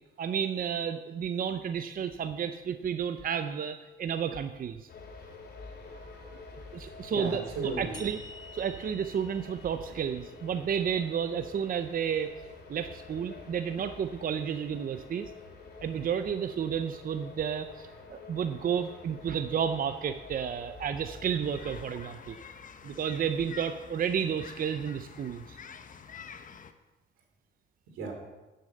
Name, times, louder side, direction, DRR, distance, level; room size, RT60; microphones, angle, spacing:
voice 1, 0.2-4.9 6.7-8.2 8.5-12.3 12.7-15.3 15.8-22.4 22.8-25.6, right 7 dB, 45° right, 9 dB, 0.6 m, -31 dB
sound 1, 4.9-21.8, left 3 dB, 55° left, 3.0 m, -48 dB
voice 2, 5.9-6.4 7.1-8.0 27.9-28.1, right 3 dB, 90° right, 2 dB, 2.9 m, -35 dB
sound 2, 7.9-11.3, left 4 dB, 20° left, 1.1 m, -52 dB
sound 3, 21.4-26.7, left 6 dB, 40° left, 0.9 m, -48 dB
11.0 x 6.5 x 7.6 m, 1.2 s
cardioid pair, 90°, 20 cm